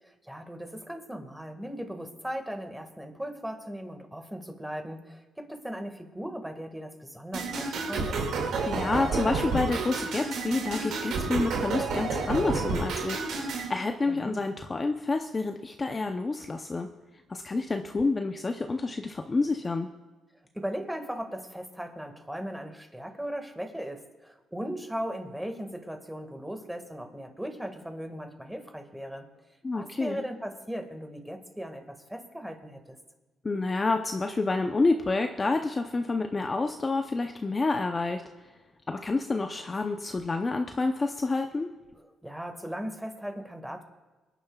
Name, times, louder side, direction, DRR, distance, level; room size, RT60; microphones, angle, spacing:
voice 1, 0.0-8.2 14.1-14.4 20.5-29.3 29.7-33.0 42.2-43.8, equal, 5° right, 5 dB, 1.7 m, -38 dB
sound 1, 7.3-13.7, right 3 dB, 80° right, 2.2 m, -30 dB
voice 2, 8.7-16.9 17.3-19.9 29.6-30.2 33.4-38.2 38.9-41.7, left 3 dB, 30° left, 5 dB, 0.7 m, -28 dB
24.5 x 10.0 x 2.4 m, 1.2 s
cardioid pair, 90°, 0 cm